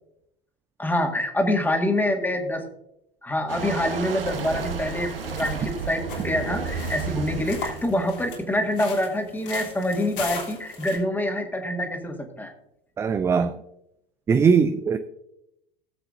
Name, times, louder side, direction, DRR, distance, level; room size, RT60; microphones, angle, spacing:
voice 1, 0.8-2.7 3.2-12.5, left 1 dB, 5° left, 1.9 m, -26 dB
sound 1, 3.5-8.8, right 5 dB, 75° right, 1.2 m, -33 dB
sound 2, 5.0-11.0, left 5 dB, 65° left, 3.2 m, -38 dB
voice 2, 13.0-13.6 14.3-15.0, right 6 dB, 10° right, 0.3 m, -20 dB
18.5 x 7.9 x 2.6 m
figure-of-eight pair, 85°, 29 cm